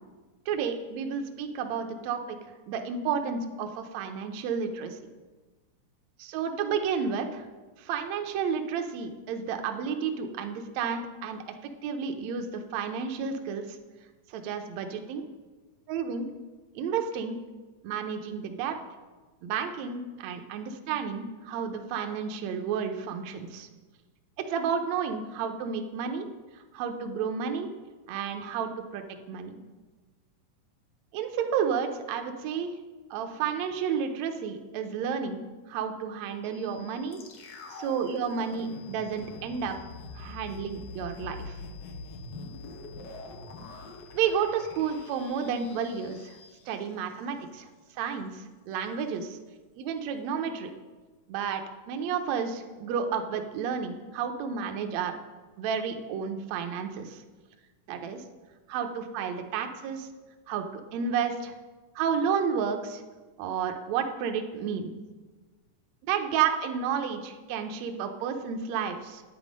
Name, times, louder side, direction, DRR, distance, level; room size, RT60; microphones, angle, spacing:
voice 1, 0.5-2.4 2.7-5.0 6.2-7.5 7.8-13.6 14.3-15.2 15.9-16.3 16.8-17.4 17.8-18.8 19.4-23.7 24.4-26.3 26.7-27.7 28.1-29.6 31.1-32.7 33.1-35.4 35.7-37.2 37.7-39.8 40.2-41.6 44.1-46.4 46.7-47.7 48.0-49.4 49.8-50.7 51.3-51.6 51.9-55.2 55.6-57.2 57.9-58.2 58.7-60.1 60.5-61.5 62.0-63.0 63.4-64.9 66.1-69.2, right 7 dB, 70° right, 5 dB, 1.9 m, -31 dB
sound 1, 36.4-46.4, left 13 dB, 5° left, 1.0 m, -57 dB
sound 2, 37.1-47.3 47.5-47.6, left 3 dB, 75° left, 1.0 m, -44 dB
9.8 x 8.1 x 5.2 m, 1.3 s
omnidirectional pair, 3.7 m